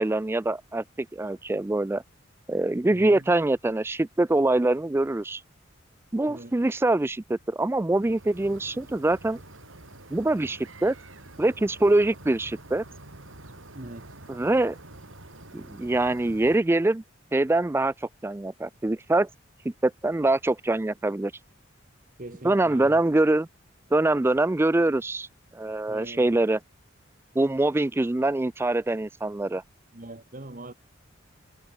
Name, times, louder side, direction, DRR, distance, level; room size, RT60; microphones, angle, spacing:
voice 1, 0.0-2.0 2.5-5.4 6.1-9.4 10.1-11.0 11.4-12.8 14.3-14.8 15.5-17.0 17.3-19.3 19.8-21.3 22.4-23.5 23.9-25.3 25.5-26.6 27.4-29.6, right 2 dB, 10° right, 0.3 m, -24 dB
voice 2, 2.9-3.2 6.3-6.5 13.7-14.2 22.2-23.0 25.9-26.3 29.9-30.7, right 1 dB, 40° right, 1.6 m, -42 dB
sound 1, 8.0-16.6, right 2 dB, 80° right, 4.5 m, -47 dB
head